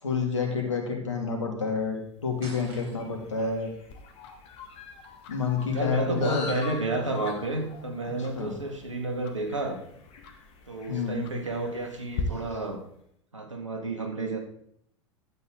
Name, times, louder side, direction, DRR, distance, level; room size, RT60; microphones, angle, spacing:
voice 1, 0.0-3.7 5.3-6.5 8.0-8.6 10.9-11.4, left 5 dB, 80° left, 2 dB, 2.6 m, -29 dB
sound 1, 2.0-12.6, left 5 dB, 40° left, 2.3 m, -45 dB
sound 2, 2.4-3.4, right 3 dB, 55° right, 3.8 m, -46 dB
Tick-tock, 3.9-12.2, left 10 dB, 55° left, 1.6 m, -46 dB
voice 2, 5.7-9.8 10.7-12.8 13.3-14.4, right 2 dB, 90° right, 4 dB, 2.0 m, -31 dB
12.0 x 8.5 x 3.7 m, 0.70 s
figure-of-eight pair, 85°, 15 cm